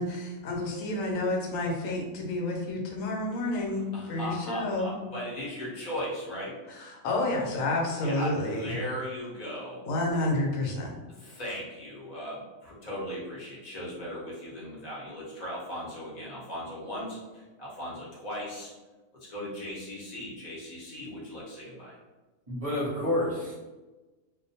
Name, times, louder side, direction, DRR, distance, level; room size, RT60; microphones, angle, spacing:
voice 1, 0.0-4.9 6.7-8.8 9.9-11.0, left 2 dB, 80° left, 0 dB, 1.0 m, -30 dB
voice 2, 3.7-6.6 8.0-9.8 11.2-18.7 19.2-21.9, equal, 35° left, -6 dB, 0.7 m, -38 dB
voice 3, 22.5-23.5, left 1 dB, 35° right, -7 dB, 0.6 m, -29 dB
2.4 x 2.2 x 2.6 m, 1.2 s
omnidirectional pair, 1.4 m